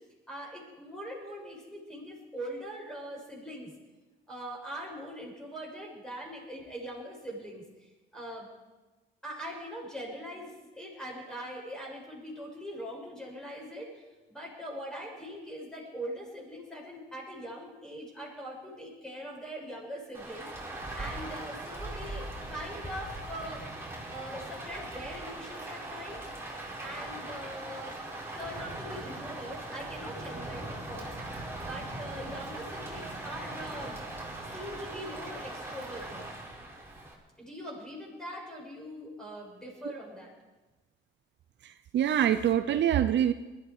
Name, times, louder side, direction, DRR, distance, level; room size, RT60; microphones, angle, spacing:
voice 1, 0.3-3.7 4.3-8.5 9.2-14.0 14.3-23.6 24.1-26.2 26.8-28.0 28.4-31.2 31.6-33.9 34.5-36.3 37.4-40.3, equal, 5° left, -2 dB, 6.9 m, -42 dB
Rain, 20.1-37.1, right 2 dB, 10° right, 4.6 m, -40 dB
voice 2, 41.6-43.3, right 10 dB, 65° right, 10 dB, 0.7 m, -25 dB
20.5 x 13.5 x 4.9 m, 1.2 s
cardioid pair, 90°, 20 cm